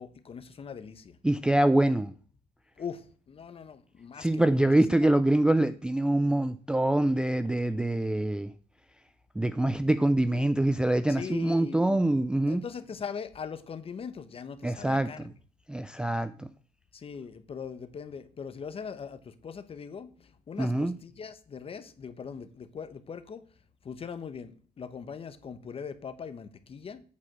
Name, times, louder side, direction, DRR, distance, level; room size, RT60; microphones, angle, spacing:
voice 1, 0.0-1.2 2.8-4.6 5.0-5.1 11.1-11.9 12.5-15.3 16.9-23.4 23.8-27.0, left 6 dB, 35° left, 0.9 m, -41 dB
voice 2, 1.2-2.1 4.2-8.5 9.4-12.6 14.6-15.3 15.7-16.5 20.6-20.9, right 1 dB, 5° right, 0.3 m, -25 dB
8.5 x 4.9 x 6.1 m
cardioid pair, 110°, 17 cm